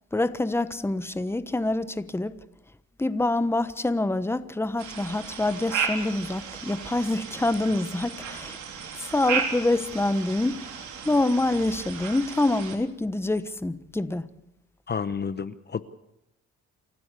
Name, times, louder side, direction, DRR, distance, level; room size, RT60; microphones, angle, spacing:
voice 1, 0.1-2.4 3.0-8.6 9.1-10.7 11.0-14.3, left 2 dB, 10° left, 1.1 m, -26 dB
sound 1, 4.8-12.8, right 6 dB, 75° right, 3.7 m, -34 dB
voice 2, 14.9-15.8, left 6 dB, 35° left, 0.9 m, -30 dB
28.5 x 12.5 x 8.4 m
cardioid pair, 90°, 30 cm